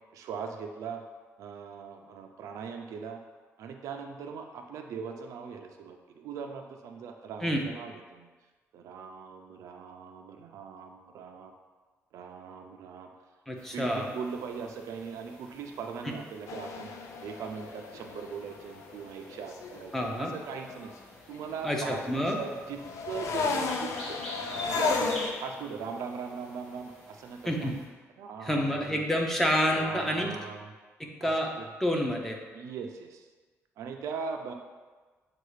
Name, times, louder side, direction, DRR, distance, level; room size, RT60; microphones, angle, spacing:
voice 1, 0.1-1.0 1.4-3.2 3.6-8.3 8.7-11.5 12.1-13.1 13.7-16.9 17.2-19.9 20.2-20.9 21.3-24.2 24.7-27.7 28.2-28.9 29.7-30.7 31.2-31.3 31.6-31.7 32.5-33.2 33.8-34.5, right 6 dB, 80° right, 4 dB, 0.4 m, -40 dB
voice 2, 13.5-14.1 19.9-20.3 21.6-22.4 27.4-27.7 28.4-30.3 31.0-31.5 31.8-32.4, equal, 5° left, 0 dB, 0.5 m, -28 dB
sound 1, 13.6-27.8, left 1 dB, 20° left, 1.5 m, -48 dB
sound 2, 16.5-20.9 21.3-25.3, left 4 dB, 70° left, 0.4 m, -34 dB
6.6 x 2.4 x 3.2 m, 1.4 s
cardioid pair, 150°, 5 cm